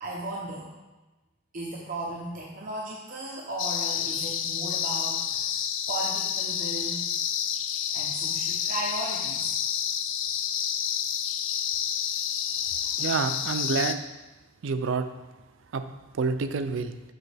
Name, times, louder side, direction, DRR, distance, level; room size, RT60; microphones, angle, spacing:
voice 1, 0.0-0.7 1.5-5.4 5.9-7.1 7.9-9.5, right 2 dB, 40° right, -3 dB, 0.8 m, -35 dB
sound 1, 3.6-13.9, left 9 dB, 65° left, 0.4 m, -29 dB
voice 2, 13.0-14.1 14.6-15.1 15.7-17.0, right 4 dB, 70° right, 10 dB, 0.4 m, -28 dB
6.7 x 6.1 x 3.4 m, 1.1 s
head